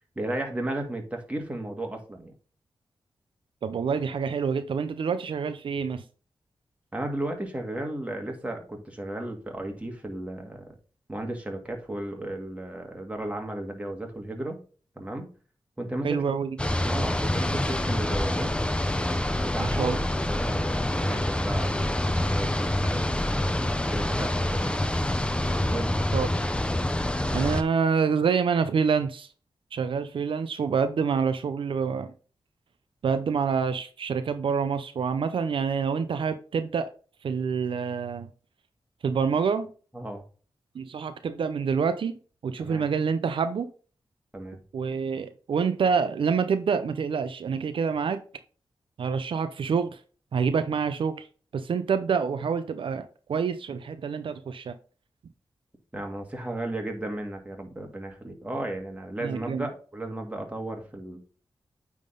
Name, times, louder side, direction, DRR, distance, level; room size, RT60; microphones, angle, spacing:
voice 1, 0.2-2.3 6.9-10.6 11.1-14.6 15.0-15.3 15.8-16.2 16.9-18.5 19.4-20.0 20.3-24.9 25.7-25.9 39.9-40.2 42.6-42.8 44.3-44.6 55.9-61.2, right 1 dB, 15° right, 1.9 m, -34 dB
voice 2, 3.6-6.0 16.0-16.5 19.6-20.0 26.1-26.3 27.3-29.3 29.7-32.1 33.0-36.9 37.2-38.3 39.0-39.7 40.7-42.2 42.4-43.7 44.7-48.2 49.0-50.0 50.3-51.3 51.5-54.7 59.2-59.6, right 6 dB, 80° right, 0.5 m, -27 dB
sound 1, 16.6-27.6, left 1 dB, 10° left, 0.7 m, -26 dB
9.1 x 3.7 x 3.8 m
wide cardioid pair, 80°, 9 cm